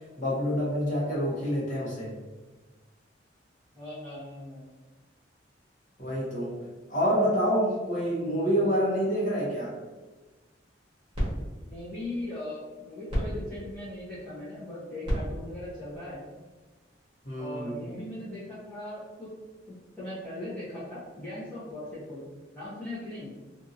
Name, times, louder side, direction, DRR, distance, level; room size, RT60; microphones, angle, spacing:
voice 1, 0.2-2.2 6.0-6.6 6.9-9.7 17.2-17.8, equal, 40° left, -7 dB, 1.0 m, -27 dB
voice 2, 3.7-4.6 11.6-16.2 17.4-19.3 20.0-22.2 22.5-23.3, left 1 dB, 5° left, -15 dB, 0.9 m, -39 dB
sound 1, 10.6-17.0, equal, 30° right, 1.1 m, -37 dB
2.7 x 2.5 x 2.6 m, 1.2 s
head